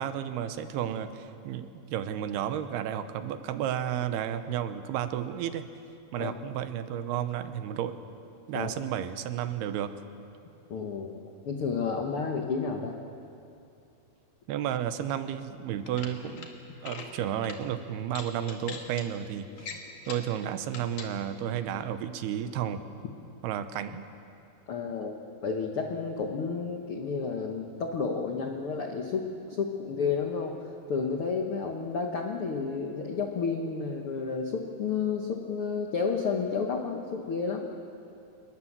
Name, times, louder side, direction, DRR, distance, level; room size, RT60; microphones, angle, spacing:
voice 1, 0.0-5.6 6.1-8.0 8.5-9.9 14.5-16.5 16.8-22.8 23.4-24.1, right 10 dB, 85° right, 10 dB, 2.9 m, -32 dB
voice 2, 10.7-11.1 11.4-12.9 24.7-30.6 30.9-37.7, left 5 dB, 75° left, 2 dB, 1.2 m, -31 dB
sound 1, 15.7-16.5 16.8-17.1 17.4-17.6 18.1-19.0 19.6-20.3 20.7-21.1, left 5 dB, 55° left, 3.1 m, -41 dB
26.0 x 20.0 x 7.4 m, 2.7 s
omnidirectional pair, 4.6 m